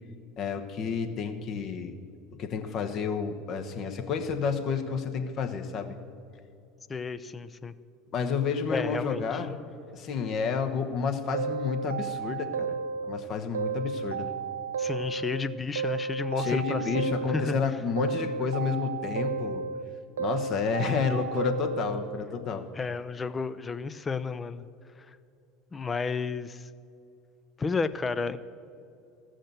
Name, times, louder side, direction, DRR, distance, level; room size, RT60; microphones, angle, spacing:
voice 1, 0.4-2.0 2.4-6.0 8.1-9.5 9.9-12.8 13.0-14.3 16.4-19.6 20.2-22.6, left 6 dB, 45° left, 6 dB, 1.1 m, -30 dB
voice 2, 6.9-7.7 8.7-9.4 14.8-17.1 17.3-17.5 22.7-24.7 25.7-26.7 27.6-28.4, left 4 dB, 25° left, 13 dB, 0.6 m, -32 dB
sound 1, 11.3-13.2 13.5-15.4 15.8-17.6 18.0-19.8 20.2-22.1, right 6 dB, 80° right, 0.4 m, -33 dB
14.5 x 6.4 x 8.0 m, 2.6 s
hypercardioid pair, 75°, 0 cm